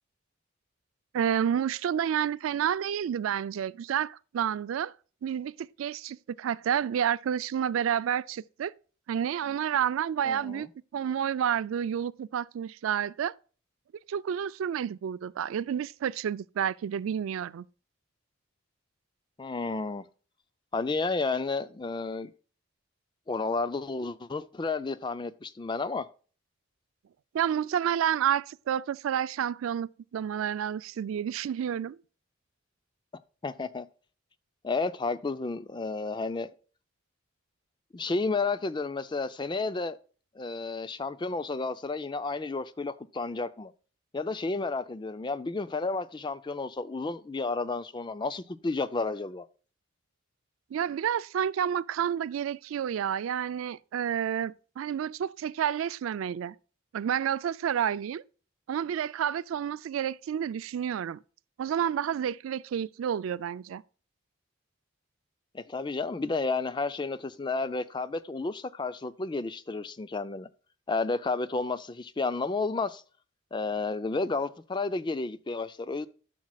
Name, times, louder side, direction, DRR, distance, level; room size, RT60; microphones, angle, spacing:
voice 1, 1.1-4.9 5.2-8.7 9.1-13.3 14.1-17.7 27.3-32.0 50.7-56.5 56.9-58.2 58.7-61.2 61.6-63.8, right 9 dB, 80° right, 0.3 m, -30 dB
voice 2, 10.2-10.6 19.4-20.0 20.7-22.3 23.3-26.1 33.4-33.9 34.6-36.5 37.9-40.0 40.4-43.7 44.1-49.5 65.5-70.5 70.9-73.0 73.5-76.1, left 3 dB, 20° left, 0.4 m, -31 dB
11.5 x 6.1 x 2.3 m
head